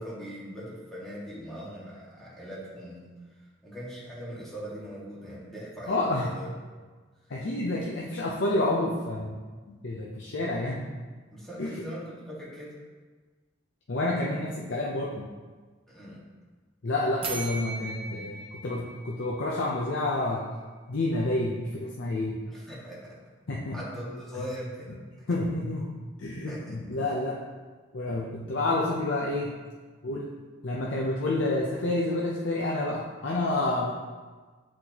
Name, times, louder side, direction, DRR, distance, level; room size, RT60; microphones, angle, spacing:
voice 1, 0.0-3.1 3.6-6.5 11.3-12.8 15.9-16.2 22.5-23.2 23.7-25.3 26.5-27.0, equal, ahead, -8 dB, 1.6 m, -41 dB
voice 2, 5.9-6.4 7.3-9.4 9.8-10.8 11.6-11.7 13.9-15.3 16.8-20.5 20.9-22.4 23.5-23.8 25.3-25.9 26.2-27.4 27.9-29.5 30.0-30.3 30.6-33.9, left 2 dB, 65° left, -3 dB, 0.6 m, -29 dB
sound 1, 17.2-20.0, right 3 dB, 30° right, 0.7 m, -38 dB
8.1 x 4.3 x 2.9 m, 1.4 s
head